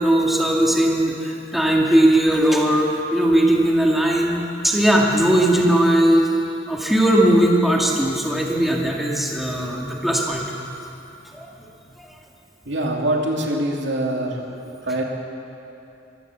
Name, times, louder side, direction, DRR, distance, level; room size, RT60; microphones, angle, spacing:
voice 1, 0.0-6.3 6.7-10.5 11.3-11.5 12.0-12.1, right 1 dB, ahead, -2 dB, 2.1 m, -18 dB
voice 2, 12.6-14.4 14.8-15.0, right 1 dB, 65° right, 0 dB, 2.7 m, -23 dB
24.0 x 14.5 x 7.3 m, 2.9 s
head